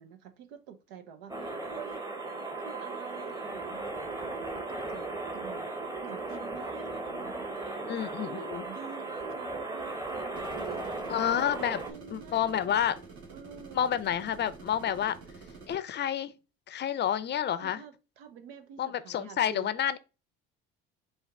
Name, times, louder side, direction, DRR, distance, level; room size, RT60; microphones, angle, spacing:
voice 1, 0.0-2.0 2.6-5.7 6.0-11.1 11.4-12.8 13.3-13.9 17.6-19.7, right 7 dB, 80° right, 0.7 m, -48 dB
sound 1, 1.3-11.9, right 2 dB, 10° right, 1.0 m, -37 dB
voice 2, 7.9-8.6 11.1-11.8 12.1-13.0 13.7-15.2 15.7-16.3 16.7-17.8 18.8-20.0, left 9 dB, 35° left, 0.5 m, -29 dB
sound 2, 10.3-15.8, right 4 dB, 55° right, 1.7 m, -48 dB
5.2 x 2.4 x 3.6 m
hypercardioid pair, 65°, 29 cm